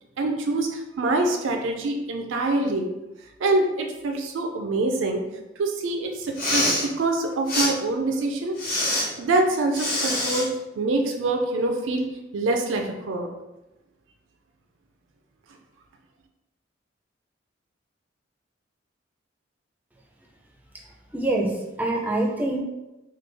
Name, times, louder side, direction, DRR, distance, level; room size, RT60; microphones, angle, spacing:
voice 1, 0.2-2.9 3.4-5.2 5.6-8.6 8.9-10.5 10.8-12.1 12.3-13.3, right 2 dB, 75° right, 3 dB, 0.4 m, -25 dB
Respiratory sounds, 6.2-6.9 7.5-7.7 8.6-9.0 9.7-10.5, left 1 dB, 45° left, 1.0 m, -24 dB
voice 2, 21.1-22.6, right 2 dB, 10° right, -1 dB, 0.4 m, -25 dB
3.1 x 2.2 x 3.3 m, 0.99 s
head